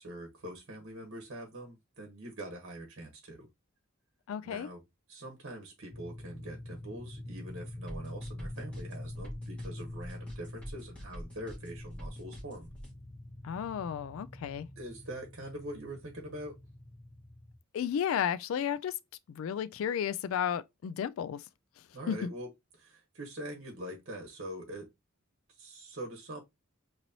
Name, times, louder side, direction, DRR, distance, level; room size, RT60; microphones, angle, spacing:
voice 1, 0.0-3.5 4.4-4.8 5.1-12.7 14.8-16.5 21.9-22.5 22.8-24.9 25.5-26.4, right 1 dB, 55° right, 1.2 m, -43 dB
voice 2, 4.3-4.7 13.4-14.7 17.7-19.0 19.3-21.5 21.8-22.3, left 8 dB, 65° left, 0.3 m, -33 dB
sound 1, 5.9-17.6, left 1 dB, 25° left, 0.6 m, -45 dB
sound 2, 7.9-12.9, equal, 5° left, 1.9 m, -46 dB
4.0 x 3.0 x 2.8 m
head